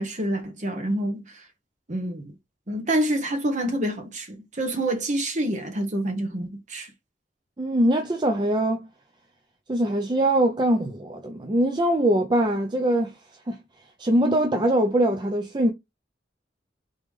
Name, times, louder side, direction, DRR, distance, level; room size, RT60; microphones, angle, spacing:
voice 1, 0.0-1.4 1.9-2.3 2.7-6.9, right 1 dB, 40° right, 1.1 m, -27 dB
voice 2, 7.6-8.9 9.7-13.2 13.5-13.6 14.0-15.7, right 1 dB, 25° right, 0.5 m, -22 dB
3.8 x 3.3 x 3.5 m
head